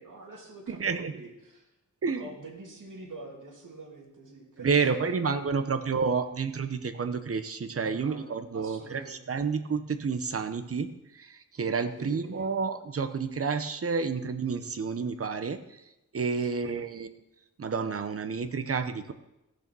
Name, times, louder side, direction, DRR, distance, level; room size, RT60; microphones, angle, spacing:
voice 1, 0.0-1.7 2.2-5.7 7.8-9.4 12.0-12.5 16.4-16.8, right 2 dB, 70° right, 0 dB, 2.8 m, -46 dB
voice 2, 0.7-1.1 2.0-2.2 4.6-15.6 16.1-17.1 17.6-19.1, right 5 dB, 45° right, 9 dB, 0.8 m, -30 dB
14.5 x 6.8 x 6.1 m, 0.91 s
wide cardioid pair, 165°, 33 cm